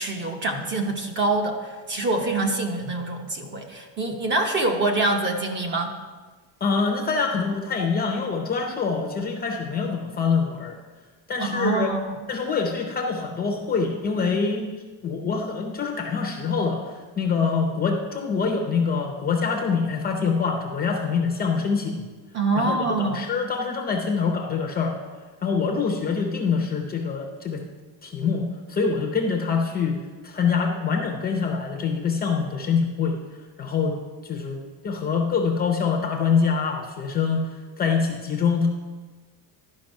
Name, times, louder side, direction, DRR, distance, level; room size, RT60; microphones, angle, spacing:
voice 1, 0.0-5.9 11.4-12.2 22.3-23.3, right 2 dB, 25° right, 3 dB, 0.8 m, -25 dB
voice 2, 6.6-10.8 11.3-11.9 12.3-14.7 15.0-22.1 22.6-25.0 25.4-27.6 28.0-33.2 33.6-33.9 34.2-38.7, left 5 dB, 20° left, 1 dB, 0.6 m, -25 dB
11.5 x 5.3 x 5.3 m, 1.3 s
cardioid pair, 170°, 44 cm